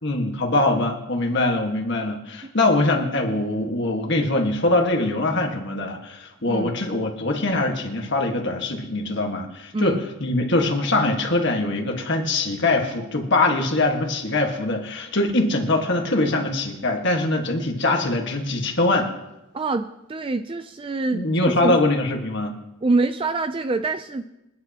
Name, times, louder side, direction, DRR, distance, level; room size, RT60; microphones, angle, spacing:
voice 1, 0.0-19.1 21.1-22.6, left 2 dB, 55° left, 2 dB, 1.6 m, -23 dB
voice 2, 19.5-21.8 22.8-24.2, right 3 dB, 25° right, 10 dB, 0.4 m, -25 dB
27.5 x 9.6 x 2.9 m, 0.94 s
head